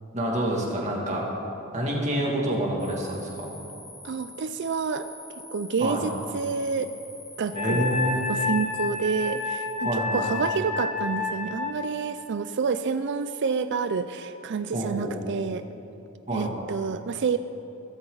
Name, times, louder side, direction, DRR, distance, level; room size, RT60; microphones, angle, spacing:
voice 1, 0.1-1.2 1.7-3.5 5.8-6.0 7.5-8.3 9.8-10.3 14.7-15.1 16.3-16.5, right 1 dB, 35° right, -3 dB, 2.4 m, -27 dB
sound 1, 2.8-9.7, left 2 dB, 10° left, 3.7 m, -46 dB
voice 2, 4.0-5.1 5.5-6.9 7.4-7.9 8.3-15.6 16.3-17.4, right 5 dB, 60° right, 11 dB, 0.4 m, -28 dB
Wind instrument woodwind instrument, 7.5-11.8, left 4 dB, 30° left, 1.5 m, -29 dB
16.0 x 14.0 x 4.0 m, 2.8 s
head